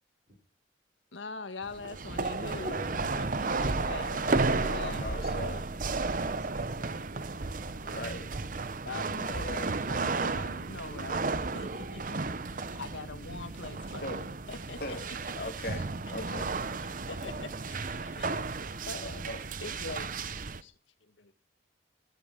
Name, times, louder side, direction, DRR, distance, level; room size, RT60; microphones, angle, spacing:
voice 1, 1.1-4.2 4.5-5.1 8.9-11.3 11.5-14.2 14.5-15.0 15.2-15.5 17.1-18.3 18.8-19.3 19.6-20.2 20.6-20.7 21.2-21.3, left 3 dB, 80° left, 9 dB, 1.8 m, -43 dB
sound 1, 1.6-20.6, right 3 dB, 45° right, 0.8 m, -33 dB
voice 2, 2.5-3.0 3.8-5.7 7.9-8.3 14.0-14.3 14.8-15.0 15.4-16.5 18.1-18.3 18.9-19.4, left 1 dB, 50° left, 4 dB, 2.6 m, -40 dB
voice 3, 6.2-8.1 12.5-13.1 14.6-15.1, right 1 dB, 70° right, 4 dB, 5.7 m, -52 dB
15.5 x 11.5 x 5.0 m, 0.36 s
head